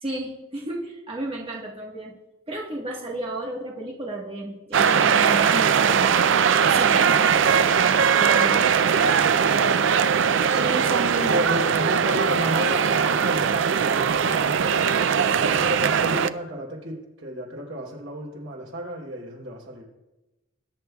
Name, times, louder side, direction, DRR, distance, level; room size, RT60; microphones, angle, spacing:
voice 1, 0.0-2.1 2.5-6.1 6.7-7.3 8.0-8.6 10.6-11.4, right 2 dB, 30° right, -3 dB, 1.4 m, -32 dB
sound 1, 4.7-16.3, right 7 dB, 70° right, 0.4 m, -20 dB
voice 2, 9.4-9.8 11.3-19.8, equal, 90° right, -2 dB, 4.2 m, -32 dB
20.5 x 10.0 x 2.3 m, 1.0 s
head